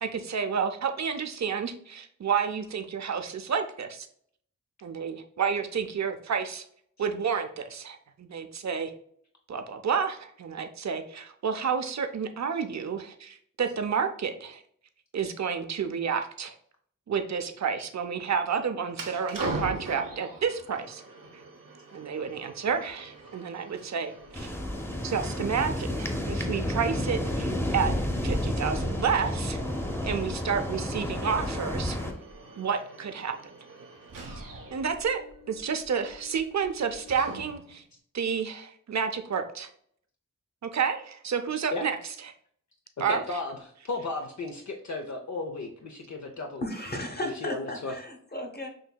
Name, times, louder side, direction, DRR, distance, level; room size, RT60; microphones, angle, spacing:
voice 1, 0.0-4.1 4.8-6.7 7.0-8.9 9.5-14.6 15.1-16.5 17.1-21.0 21.9-24.6 25.0-27.9 28.2-29.6 30.0-32.0 32.6-33.6 34.7-35.2 35.5-37.8 38.1-39.7 40.7-42.0 42.2-42.3 43.0-43.4, right 6 dB, 55° right, 7 dB, 0.6 m, -30 dB
sound 1, 18.9-37.8, right 2 dB, 75° right, 0.9 m, -43 dB
sound 2, 24.3-32.1, left 1 dB, 5° left, 0.7 m, -30 dB
voice 2, 43.1-43.6 43.8-46.6 47.2-47.9, left 3 dB, 55° left, 2 dB, 0.6 m, -34 dB
voice 3, 46.6-48.7, left 1 dB, 30° left, 3 dB, 1.0 m, -35 dB
6.3 x 2.7 x 2.3 m, 0.64 s
cardioid pair, 40°, 33 cm